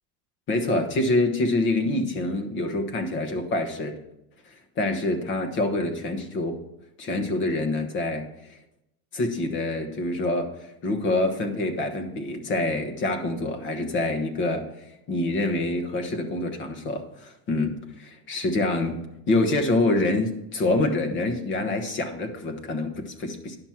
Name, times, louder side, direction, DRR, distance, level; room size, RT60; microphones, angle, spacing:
voice 1, 0.5-4.0 4.5-6.6 7.0-8.6 9.1-10.5 10.8-14.7 15.1-19.0 19.3-23.6, left 2 dB, 25° left, 6 dB, 1.1 m, -26 dB
11.0 x 6.1 x 5.8 m, 0.87 s
cardioid pair, 170°, 43 cm